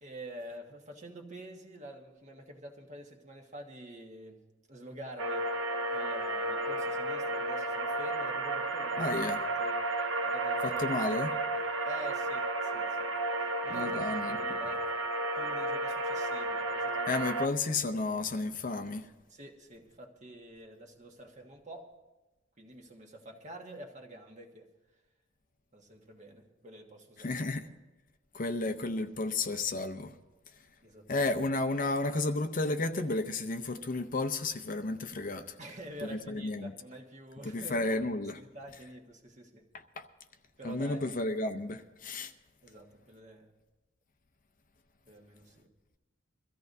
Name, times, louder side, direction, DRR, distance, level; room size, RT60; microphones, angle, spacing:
voice 1, 0.0-4.4 4.7-5.5 5.9-9.1 9.4-9.9 10.2-11.0 11.3-13.1 13.6-14.8 15.3-17.2 19.3-21.9 22.6-24.7 25.7-27.4 30.8-31.3 35.6-37.8 38.3-39.7 40.6-41.0 42.6-43.5 45.0-45.7, right 1 dB, 40° right, 1.4 m, -47 dB
sound 1, 5.2-17.5, right 2 dB, 80° right, 0.8 m, -32 dB
voice 2, 9.0-9.4 10.6-11.3 13.7-14.6 17.1-19.1 27.2-27.7 28.3-30.1 31.1-35.6 36.1-36.7 37.4-38.4 40.0-40.1 40.6-42.3, left 2 dB, 45° left, 0.6 m, -32 dB
23.0 x 14.0 x 2.7 m
head